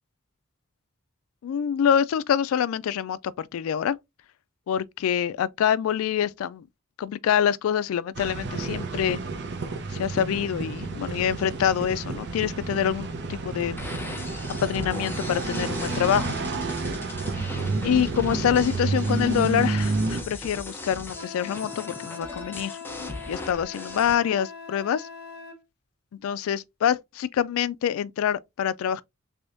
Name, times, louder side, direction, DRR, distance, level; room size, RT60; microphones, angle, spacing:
voice 1, 1.4-4.0 4.7-6.6 7.0-9.2 9.9-13.8 14.6-16.4 17.8-25.1 26.2-29.0, left 9 dB, 75° left, 0.3 m, -26 dB
sound 1, 8.1-20.2, right 3 dB, 55° right, 0.7 m, -30 dB
sound 2, 13.8-24.1, left 2 dB, 10° left, 0.7 m, -38 dB
Wind instrument woodwind instrument, 21.1-25.6, left 6 dB, 50° left, 0.9 m, -41 dB
3.5 x 3.4 x 2.6 m
head